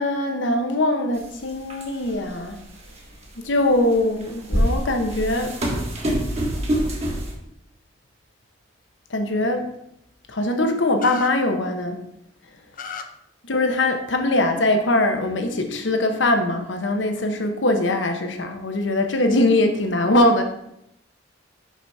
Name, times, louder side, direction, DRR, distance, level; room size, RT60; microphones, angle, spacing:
voice 1, 0.0-2.6 3.4-5.5 9.1-9.7 10.3-12.0 13.4-20.4, left 1 dB, 70° left, 6 dB, 1.0 m, -22 dB
sound 1, 1.2-1.3 1.7-2.2 2.9-3.0 4.0-7.3, equal, 35° right, 1.4 m, -24 dB
sound 2, 11.0-11.3 12.7-13.0, left 6 dB, 45° left, 0.6 m, -33 dB
5.8 x 5.7 x 4.7 m, 0.78 s
head